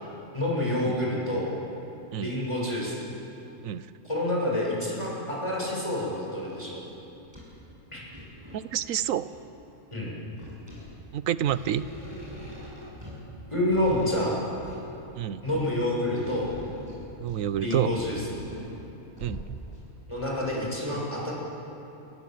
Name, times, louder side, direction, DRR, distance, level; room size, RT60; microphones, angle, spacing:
voice 1, 0.3-1.5 2.2-3.0 4.0-6.8 7.9-8.0 9.9-10.1 13.5-14.3 15.4-16.5 17.6-18.2 20.1-21.3, left 1 dB, 20° left, -4 dB, 6.6 m, -28 dB
sound 1, 2.7-2.8 3.4-3.5 4.6-4.9 5.6-6.1 6.5-6.6 6.9-7.7 8.0-9.6 10.1-19.9 20.5-20.6, equal, 20° right, 7.6 m, -43 dB
voice 2, 8.5-9.3 11.1-11.9 15.2-15.4 17.2-18.0 19.2-19.6, right 10 dB, 90° right, 15 dB, 1.1 m, -28 dB
29.0 x 20.5 x 7.7 m, 3.0 s
omnidirectional pair, 1.3 m